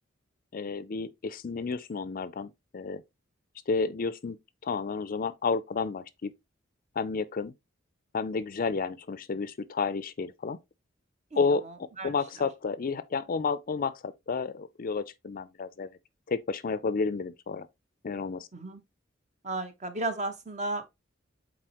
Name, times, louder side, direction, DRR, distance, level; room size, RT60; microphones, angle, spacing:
voice 1, 0.5-3.0 3.7-4.4 4.6-6.3 7.0-7.5 8.1-10.6 11.3-11.7 12.0-15.9 16.3-17.7 18.0-18.5, left 4 dB, 45° left, 0.5 m, -31 dB
voice 2, 11.3-12.1 18.5-18.8 19.4-20.9, right 2 dB, 35° right, 1.0 m, -34 dB
7.6 x 4.2 x 3.0 m
head